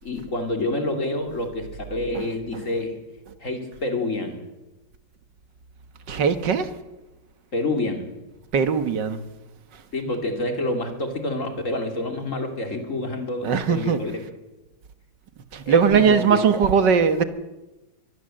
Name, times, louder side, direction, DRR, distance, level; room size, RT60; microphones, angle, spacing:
voice 1, 0.0-3.0 3.4-4.4 7.5-8.1 9.9-14.2 15.7-16.7, left 2 dB, 40° left, 3.3 m, -28 dB
voice 2, 6.1-6.7 8.5-9.2 13.4-14.0 15.5-17.2, right 6 dB, 65° right, 2.0 m, -20 dB
23.5 x 19.5 x 7.7 m
omnidirectional pair, 2.1 m